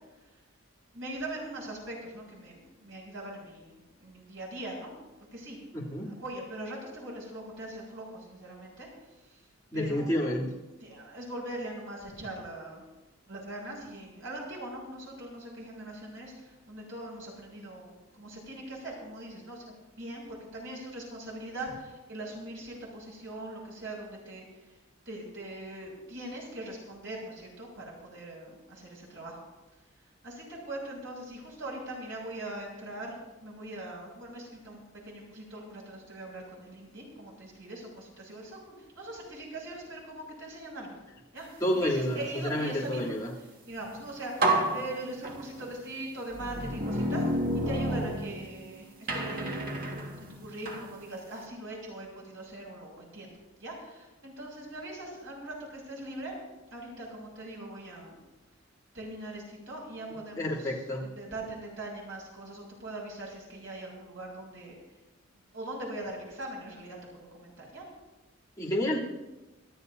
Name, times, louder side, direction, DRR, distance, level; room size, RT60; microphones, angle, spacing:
voice 1, 0.9-4.9 5.3-8.9 9.3-9.4 9.7-10.4 10.8-12.8 13.3-24.4 25.0-29.4 30.2-33.1 33.4-41.0 41.3-41.5 41.7-47.2 47.6-53.3 53.6-56.3 56.7-58.2 58.9-64.7 65.5-67.8, right 1 dB, 70° right, -3 dB, 6.8 m, -41 dB
voice 2, 5.7-6.1 9.7-10.5 41.6-43.3 60.4-61.1 68.6-69.0, left 1 dB, 15° left, -7 dB, 3.1 m, -29 dB
sound 1, 43.8-44.0 44.4-45.7 46.3-48.7 49.1-50.9, right 1 dB, 45° right, 1.8 m, -30 dB
27.0 x 13.5 x 2.8 m, 1.1 s
head